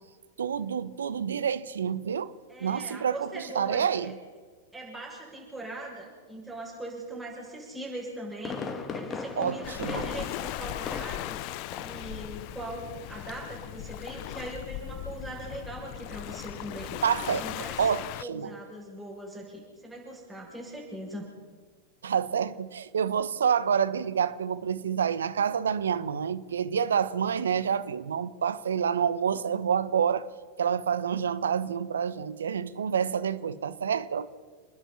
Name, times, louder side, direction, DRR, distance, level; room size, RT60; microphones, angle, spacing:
voice 1, 0.4-2.3 2.6-4.1 9.4-10.0 17.0-17.4 17.8-18.5 22.0-30.3 30.6-34.3, right 7 dB, 75° right, 1.0 m, -28 dB
voice 2, 2.5-4.1 4.7-17.0 17.4-17.9 18.2-21.3, right 1 dB, 5° right, 7.2 m, -40 dB
Fireworks, 8.0-11.4 11.7-12.1 12.4-12.5, left 5 dB, 25° left, 2.3 m, -37 dB
Waves surf, 9.6-18.2, left 16 dB, 50° left, 0.6 m, -38 dB
29.5 x 10.5 x 8.8 m
hypercardioid pair, 95°, 0 cm